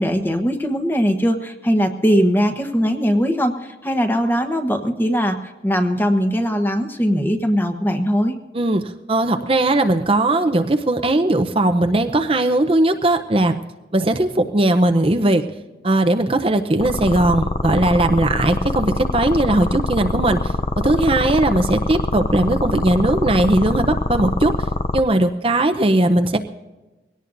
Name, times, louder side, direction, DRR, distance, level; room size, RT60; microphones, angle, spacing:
voice 1, 0.0-8.3, equal, 10° left, 6 dB, 1.1 m, -20 dB
voice 2, 8.5-13.6 13.9-15.4 15.8-24.5 24.9-26.4, right 1 dB, 30° right, 6 dB, 0.7 m, -18 dB
sound 1, 16.8-25.0, left 2 dB, 30° left, 0.5 m, -23 dB
22.0 x 17.5 x 2.6 m, 1.1 s
head